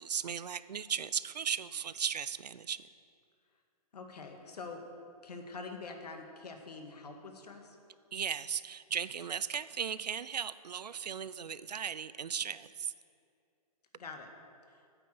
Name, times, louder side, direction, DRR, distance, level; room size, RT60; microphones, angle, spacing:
voice 1, 0.0-2.8 8.1-12.9, right 7 dB, 85° right, 15 dB, 0.6 m, -36 dB
voice 2, 3.9-4.8 5.2-7.8 13.9-14.3 14.7-14.8, left 4 dB, 80° left, 4 dB, 1.9 m, -45 dB
9.2 x 9.1 x 7.8 m, 2.4 s
hypercardioid pair, 135°, 20 cm